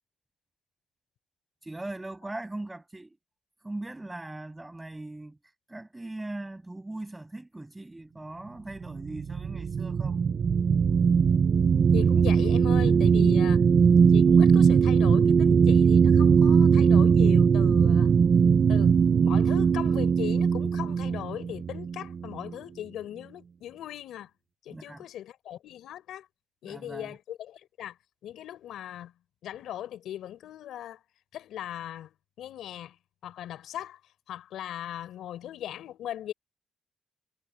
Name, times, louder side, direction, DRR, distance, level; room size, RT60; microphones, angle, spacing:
voice 1, 1.6-3.2 3.6-5.4 5.7-10.2 24.7-25.0 26.7-27.2, right 2 dB, 10° right, 7.0 m, -40 dB
sound 1, 8.8-22.5, right 6 dB, 45° right, 0.4 m, -20 dB
voice 2, 11.9-13.6 14.1-18.2 18.7-24.3 24.6-26.3 26.6-28.0 28.2-29.1 29.4-31.0 31.3-33.0 33.2-34.0 34.3-36.3, left 11 dB, 90° left, 5.2 m, -39 dB
cardioid pair, 125°, 0 cm